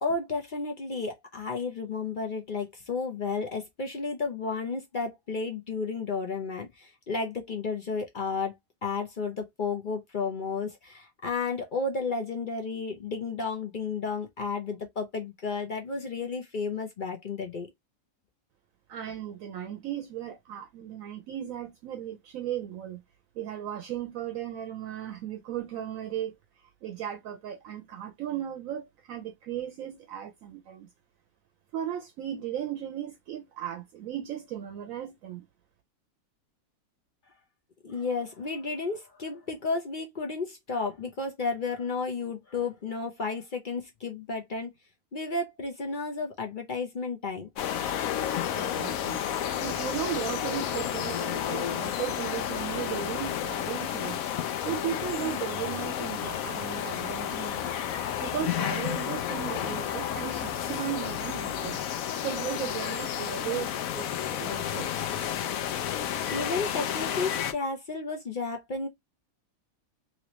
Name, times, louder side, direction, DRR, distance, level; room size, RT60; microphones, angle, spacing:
voice 1, 0.0-8.5 8.8-17.7 37.8-44.7 45.1-47.5 66.3-68.9, left 4 dB, 45° left, 0.7 m, -32 dB
voice 2, 18.9-23.0 23.3-30.9 31.7-35.4 48.5-49.2 49.6-54.2 54.6-57.8 58.2-61.8 62.2-64.9, right 10 dB, 70° right, 1.0 m, -36 dB
sound 1, 47.6-67.5, left 10 dB, 75° left, 1.0 m, -31 dB
3.1 x 2.9 x 2.9 m
omnidirectional pair, 1.5 m